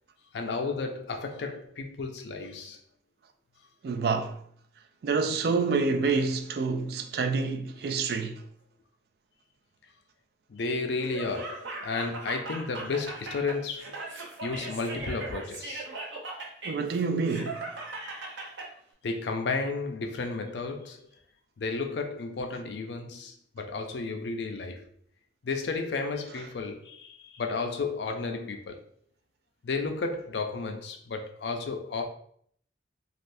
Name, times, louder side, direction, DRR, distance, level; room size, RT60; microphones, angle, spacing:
voice 1, 0.3-2.8 10.5-14.0 14.4-15.8 19.0-21.0 21.6-24.9 25.4-28.8 29.6-32.0, left 4 dB, 75° left, 0.5 m, -33 dB
voice 2, 3.8-4.4 5.0-8.4 16.6-17.6, right 4 dB, 60° right, 0.3 m, -27 dB
Laughter, 11.0-18.7, right 2 dB, 85° right, 0.7 m, -39 dB
3.3 x 2.5 x 2.5 m
head